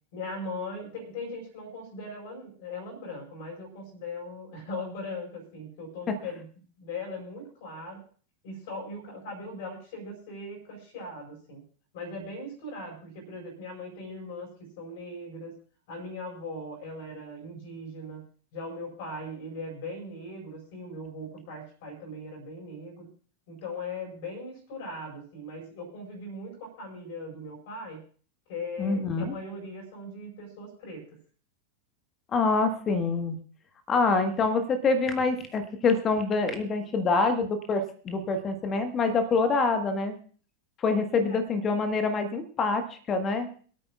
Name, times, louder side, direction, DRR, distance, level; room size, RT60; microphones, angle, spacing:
voice 1, 0.1-6.5 6.8-8.0 8.4-11.6 11.9-14.5 14.8-15.5 15.9-18.2 18.5-23.1 23.5-28.0 28.5-31.0 41.2-41.4, left 2 dB, 50° left, 0 dB, 4.6 m, -39 dB
voice 2, 28.8-29.3 32.3-33.4 33.9-40.1 40.8-43.5, left 4 dB, 25° left, 8 dB, 1.4 m, -26 dB
26.5 x 9.1 x 2.4 m, 0.44 s
figure-of-eight pair, 90°, 0 cm